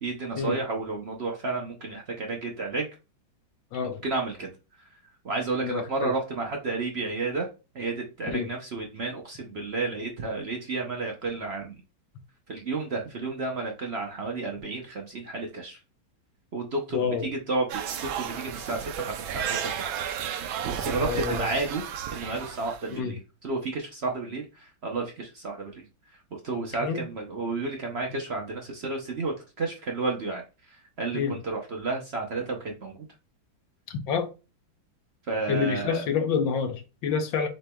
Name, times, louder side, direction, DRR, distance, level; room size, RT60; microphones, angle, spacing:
voice 1, 0.0-2.9 4.0-4.5 5.2-7.5 7.7-11.8 12.5-15.8 16.5-19.8 20.5-21.8 22.1-23.2 23.4-25.8 26.4-30.4 31.0-33.0 35.3-36.0, right 3 dB, 70° right, 0.6 m, -31 dB
voice 2, 3.7-4.0 5.6-6.1 8.3-8.5 16.9-17.3 21.0-21.5 22.9-23.1 26.8-27.0 31.1-31.3 33.9-34.3 35.5-37.5, left 6 dB, 75° left, 1.6 m, -28 dB
sound 1, 17.7-23.0, right 8 dB, 85° right, 1.5 m, -33 dB
7.3 x 3.1 x 2.2 m
omnidirectional pair, 2.2 m